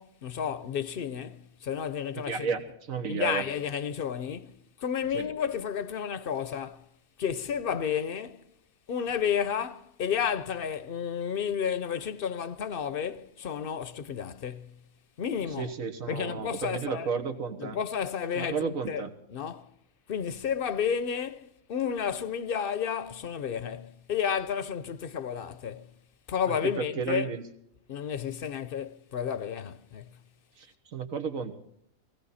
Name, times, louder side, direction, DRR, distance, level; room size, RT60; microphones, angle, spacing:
voice 1, 0.0-2.5 3.1-6.9 7.2-8.4 8.9-14.7 15.2-15.7 16.1-17.1 17.6-19.7 20.1-25.9 26.3-27.3 27.9-30.2, left 7 dB, 50° left, 0.8 m, -32 dB
voice 2, 2.3-2.6 2.9-3.4 5.1-5.3 15.6-17.8 18.3-19.1 26.5-27.4 30.6-31.5, right 6 dB, 80° right, 1.8 m, -32 dB
19.5 x 16.5 x 4.2 m
omnidirectional pair, 1.4 m